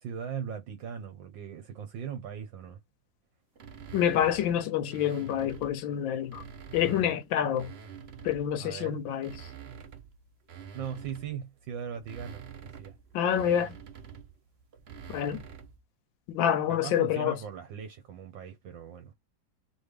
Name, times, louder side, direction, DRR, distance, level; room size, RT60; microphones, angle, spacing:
voice 1, 0.0-2.8 6.8-7.0 8.6-9.0 10.7-13.0 16.7-19.1, right 7 dB, 75° right, 1.7 m, -39 dB
sound 1, 3.6-5.8 6.2-8.6 9.1-15.8, right 7 dB, 50° right, 0.8 m, -47 dB
voice 2, 3.9-6.4 6.7-7.7 8.2-9.3 13.1-13.8 15.1-15.4 16.3-17.4, left 10 dB, 85° left, 1.4 m, -27 dB
4.2 x 3.1 x 3.3 m
omnidirectional pair, 2.1 m